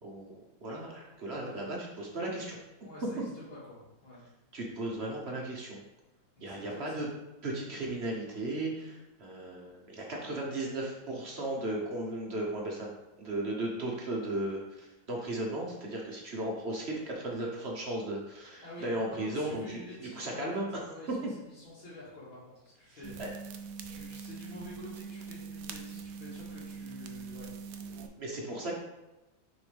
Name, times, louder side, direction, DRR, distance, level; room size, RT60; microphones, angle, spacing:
voice 1, 0.0-0.3 0.6-2.6 4.5-5.8 6.4-7.1 7.4-19.8 20.2-20.7 23.2-23.3 28.2-28.8, right 1 dB, 40° right, -2 dB, 1.0 m, -36 dB
voice 2, 1.4-1.8 2.8-4.2 6.4-7.0 18.6-23.1 23.8-27.5, left 1 dB, 80° left, -10 dB, 2.9 m, -48 dB
sound 1, 23.0-28.1, right 5 dB, 90° right, 0.7 m, -43 dB
6.7 x 4.3 x 3.5 m, 0.99 s
omnidirectional pair, 2.1 m